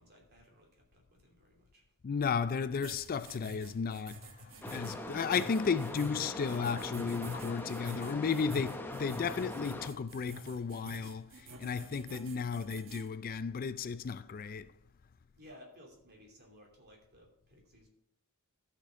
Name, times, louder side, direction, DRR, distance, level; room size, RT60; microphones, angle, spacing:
voice 1, 0.0-1.9 15.4-17.9, equal, 45° right, 2.8 m, -58 dB
voice 2, 2.0-14.7, left 5 dB, 40° left, 0.4 m, -34 dB
sound 1, 2.8-13.1, left 1 dB, 60° right, 1.1 m, -47 dB
sound 2, 4.6-9.9, left 1 dB, 10° left, 0.8 m, -42 dB
14.5 x 6.1 x 3.6 m
head